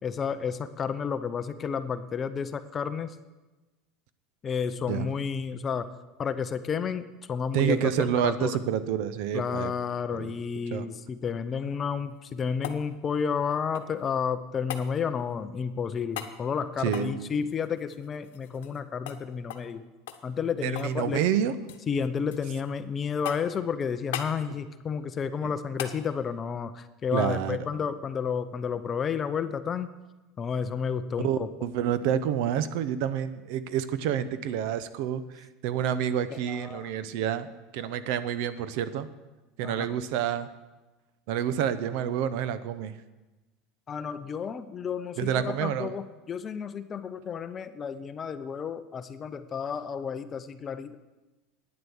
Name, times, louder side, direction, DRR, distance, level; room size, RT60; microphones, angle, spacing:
voice 1, 0.0-3.2 4.4-5.9 6.2-8.5 9.3-19.8 20.2-21.2 21.9-29.9 30.4-31.5 36.5-36.9 39.6-39.9 43.9-51.0, left 6 dB, 25° left, 12 dB, 0.6 m, -31 dB
voice 2, 7.5-9.7 10.1-10.3 10.7-10.9 16.8-17.3 20.6-21.5 27.1-27.6 31.2-37.5 37.7-39.1 39.6-40.5 41.3-42.9 45.2-45.9, right 9 dB, 65° right, 14 dB, 0.7 m, -28 dB
sound 1, 12.0-14.1 14.7-14.9 16.1-16.4 16.8-18.8 19.1-19.2 19.5-19.7 20.1-21.0 21.2-21.9 22.3-22.8 23.2-23.6 24.1-24.4 25.8-26.0 28.4-28.5, left 10 dB, 85° left, 0.9 m, -39 dB
9.6 x 7.9 x 7.0 m, 1.1 s
supercardioid pair, 135°, 0 cm